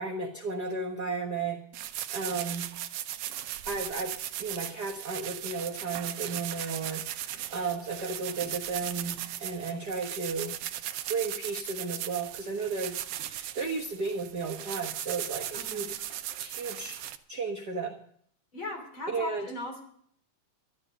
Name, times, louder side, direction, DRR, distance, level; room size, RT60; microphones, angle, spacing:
voice 1, 0.0-1.6 2.1-2.7 3.6-4.1 4.4-10.5 11.1-15.9 16.4-17.0 17.3-17.9 19.1-19.5, right 4 dB, 50° right, 1 dB, 1.3 m, -34 dB
sound 1, 1.7-17.1, right 12 dB, 75° right, 1.5 m, -38 dB
voice 2, 15.5-15.9 18.5-19.8, left 1 dB, 40° left, 3 dB, 3.9 m, -38 dB
12.5 x 12.5 x 6.6 m, 0.62 s
omnidirectional pair, 3.7 m